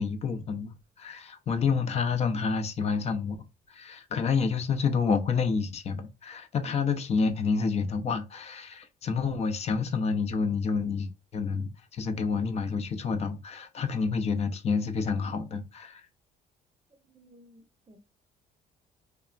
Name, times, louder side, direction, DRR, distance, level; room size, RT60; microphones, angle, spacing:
voice 1, 0.0-3.4 3.7-16.0, left 5 dB, 40° left, 0.5 m, -29 dB
voice 2, 17.0-18.0, equal, 25° right, 0.6 m, -57 dB
3.2 x 2.0 x 2.4 m
cardioid pair, 110°, 17 cm